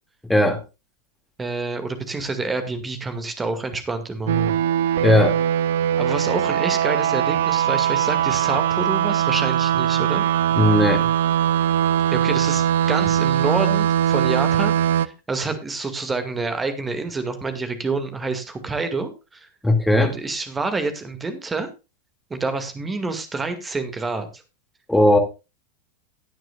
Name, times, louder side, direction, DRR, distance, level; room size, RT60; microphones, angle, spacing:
voice 1, 1.4-4.6 6.0-10.3 12.1-19.5 20.0-21.7 22.3-24.4, right 3 dB, 15° right, 9 dB, 2.2 m, -28 dB
sound 1, 4.3-15.1, right 10 dB, 55° right, 0.6 m, -21 dB
voice 2, 5.0-5.4 10.6-11.1 19.6-20.1 24.9-25.2, left 1 dB, 5° left, 5 dB, 2.5 m, -17 dB
17.5 x 9.1 x 2.5 m, 0.28 s
figure-of-eight pair, 90°, 0 cm